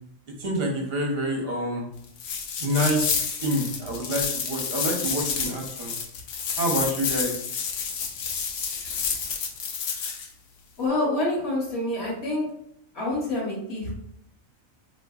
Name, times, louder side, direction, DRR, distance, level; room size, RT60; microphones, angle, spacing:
voice 1, 0.4-1.9 2.6-5.9 6.6-7.3, equal, 50° right, 0 dB, 0.9 m, -27 dB
sound 1, 2.2-10.3, left 6 dB, 70° left, 0.9 m, -30 dB
voice 2, 10.8-12.5 12.9-13.9, left 2 dB, 55° left, -4 dB, 1.2 m, -27 dB
3.7 x 2.8 x 2.3 m, 0.74 s
omnidirectional pair, 1.4 m